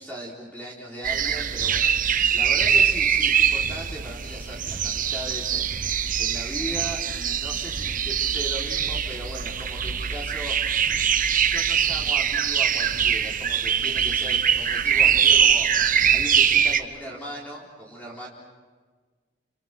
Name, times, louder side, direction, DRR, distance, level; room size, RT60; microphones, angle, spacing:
voice 1, 0.0-10.9 11.5-18.3, right 1 dB, 10° left, -4 dB, 3.9 m, -38 dB
sound 1, 1.0-16.8, right 8 dB, 45° right, 1.1 m, -23 dB
30.0 x 28.5 x 6.1 m, 1.4 s
head